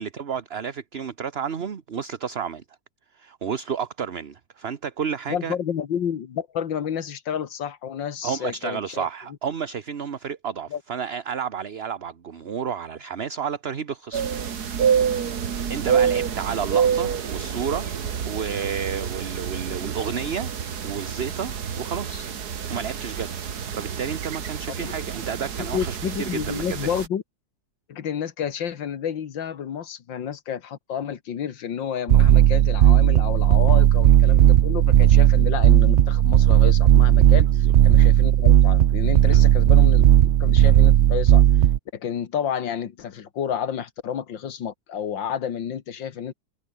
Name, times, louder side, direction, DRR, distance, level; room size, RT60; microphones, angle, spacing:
voice 1, 0.0-2.6 3.1-5.6 8.2-14.2 15.5-17.9 18.3-20.5 20.8-22.3 22.7-23.3 23.7-26.9 33.7-33.8 37.5-37.7 39.3-39.5, right 7 dB, 40° right, 1.2 m, -31 dB
voice 2, 5.3-9.1 10.7-10.8 24.8-24.9 25.6-27.2 27.9-37.5 37.8-41.4 41.9-46.3, left 8 dB, 90° left, 2.2 m, -30 dB
sound 1, 14.1-27.1, right 7 dB, 60° right, 2.0 m, -27 dB
sound 2, 32.1-41.8, right 11 dB, 75° right, 0.6 m, -15 dB
omnidirectional pair, 2.0 m